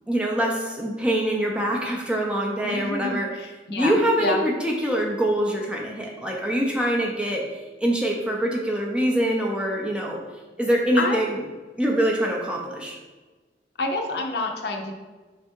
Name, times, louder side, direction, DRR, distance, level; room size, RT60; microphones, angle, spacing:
voice 1, 0.1-3.3 3.7-7.4 7.8-10.2 10.6-11.4 11.8-13.0, right 1 dB, 5° right, -1 dB, 0.5 m, -24 dB
voice 2, 2.6-4.4 11.0-11.2 13.8-14.9, left 2 dB, 65° left, 2 dB, 0.6 m, -28 dB
3.5 x 3.4 x 4.4 m, 1.3 s
head